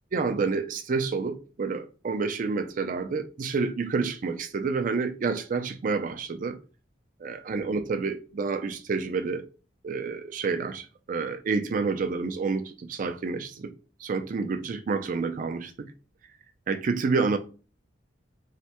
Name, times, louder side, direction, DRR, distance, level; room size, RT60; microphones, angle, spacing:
voice 1, 0.1-6.6 7.2-9.5 9.8-13.7 14.0-15.9 16.7-17.4, right 4 dB, 45° right, 0.4 m, -29 dB
3.2 x 2.1 x 2.9 m
head